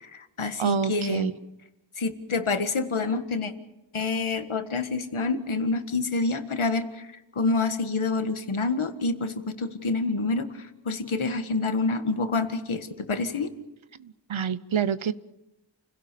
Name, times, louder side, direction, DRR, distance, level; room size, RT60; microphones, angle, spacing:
voice 1, 0.0-1.3 2.0-3.5 3.9-7.1 7.4-10.5 10.9-13.5, left 3 dB, 85° left, 8 dB, 1.7 m, -27 dB
voice 2, 0.6-1.3 14.0-15.1, right 7 dB, 75° right, 16 dB, 0.9 m, -27 dB
29.0 x 17.0 x 6.8 m, 0.96 s
wide cardioid pair, 60°, 48 cm